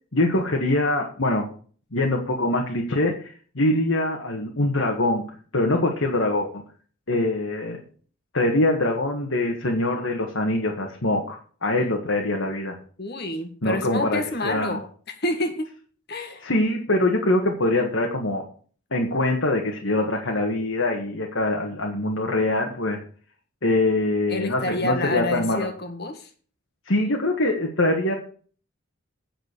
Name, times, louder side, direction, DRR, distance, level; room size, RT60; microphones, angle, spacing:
voice 1, 0.1-1.5 1.9-3.3 3.5-5.3 5.5-6.6 7.1-7.8 8.3-12.7 13.6-14.8 16.4-18.4 18.9-23.0 23.6-25.7 26.9-28.1, left 2 dB, 65° left, 1.7 m, -23 dB
voice 2, 13.0-15.7 16.1-16.4 24.3-26.3, left 2 dB, 50° left, 1.7 m, -29 dB
9.4 x 6.6 x 6.7 m
head